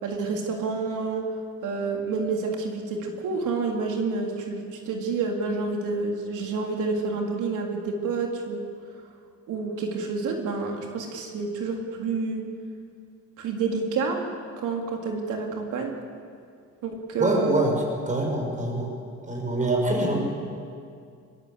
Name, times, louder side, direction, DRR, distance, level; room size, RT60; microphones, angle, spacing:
voice 1, 0.0-1.3 1.6-8.6 9.5-12.4 13.4-14.2 14.6-16.0 16.8-17.6, right 4 dB, 85° right, 1 dB, 3.6 m, -28 dB
voice 2, 17.2-17.7 18.0-18.9 19.3-20.2, right 1 dB, 25° right, 0 dB, 6.7 m, -24 dB
22.5 x 22.0 x 8.3 m, 2.3 s
cardioid pair, 90°, 30 cm